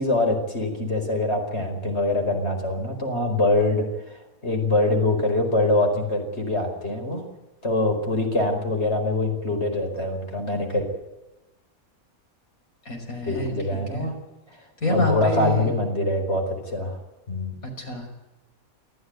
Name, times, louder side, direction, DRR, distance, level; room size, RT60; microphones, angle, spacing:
voice 1, 0.0-7.2 7.6-10.9 13.3-14.2 14.9-17.0 17.3-17.6, left 2 dB, 50° left, 3 dB, 5.2 m, -24 dB
voice 2, 12.8-14.1 14.8-15.8 17.6-18.1, left 2 dB, 75° left, 3 dB, 6.2 m, -27 dB
25.5 x 14.0 x 9.4 m, 1.0 s
omnidirectional pair, 1.5 m